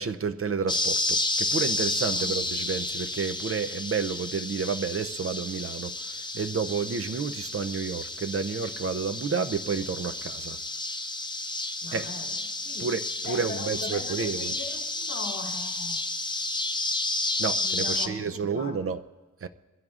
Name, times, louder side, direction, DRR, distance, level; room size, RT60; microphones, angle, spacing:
voice 1, 0.0-10.6 11.9-12.1 12.8-14.6 17.4-19.0 19.4-19.5, right 5 dB, 45° right, 10 dB, 0.5 m, -30 dB
sound 1, 0.7-18.1, left 2 dB, 15° left, 0.7 m, -31 dB
voice 2, 11.8-12.4 12.6-16.1 17.6-18.8, left 3 dB, 45° left, -1 dB, 1.7 m, -40 dB
23.0 x 15.5 x 2.4 m, 1.2 s
wide cardioid pair, 120°, 32 cm